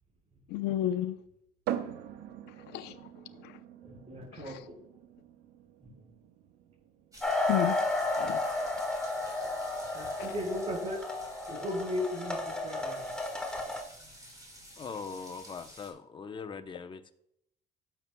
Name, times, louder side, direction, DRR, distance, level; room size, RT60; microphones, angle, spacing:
voice 1, 0.5-1.2 2.7-3.0 3.4-3.6 4.3-4.6 7.5-7.8 8.2-8.4, left 13 dB, 90° left, 0.7 m, -32 dB
sound 1, 1.7-15.2, right 10 dB, 90° right, 0.8 m, -45 dB
voice 2, 3.8-4.6 5.8-5.9 9.9-11.0 11.5-13.1, left 1 dB, 40° right, 3.8 m, -36 dB
sound 2, 7.1-15.9, right 1 dB, 20° right, 2.9 m, -51 dB
sound 3, 7.2-13.8, left 2 dB, 5° left, 1.5 m, -33 dB
voice 3, 14.8-17.1, left 5 dB, 30° left, 0.8 m, -41 dB
17.0 x 7.0 x 2.3 m
cardioid pair, 110°, 17 cm